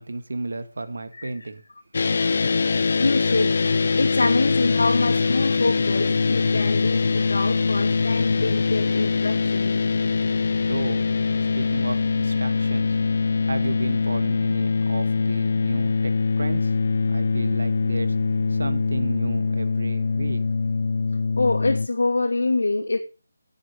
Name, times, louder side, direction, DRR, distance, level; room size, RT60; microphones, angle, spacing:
voice 1, 0.0-1.6 10.6-11.0 11.3-13.0 13.4-16.8 17.1-18.2 18.5-20.4, right 2 dB, 70° right, 2.0 m, -33 dB
voice 2, 1.1-1.5 2.7-9.7 21.4-23.0, left 2 dB, 80° left, 2.7 m, -25 dB
sound 1, 1.9-21.9, left 4 dB, 45° left, 0.5 m, -23 dB
11.0 x 8.8 x 5.3 m
figure-of-eight pair, 175°, 0 cm